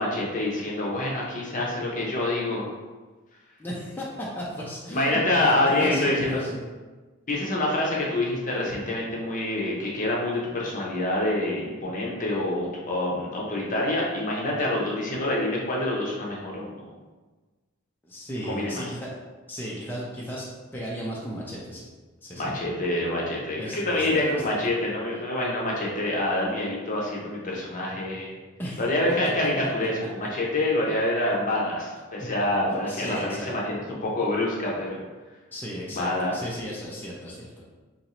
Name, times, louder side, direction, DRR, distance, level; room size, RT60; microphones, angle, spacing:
voice 1, 0.0-2.7 4.9-6.4 7.3-16.8 18.5-18.8 22.3-28.4 28.8-35.0 35.9-36.3, left 1 dB, 40° left, -3 dB, 0.7 m, -26 dB
voice 2, 3.6-6.6 18.0-19.1 19.5-20.5 20.7-21.8 22.2-22.5 23.6-24.5 28.6-28.8 32.2-32.3 32.9-33.5 35.5-37.6, equal, 10° left, -5 dB, 0.4 m, -35 dB
2.9 x 2.6 x 4.2 m, 1.3 s
head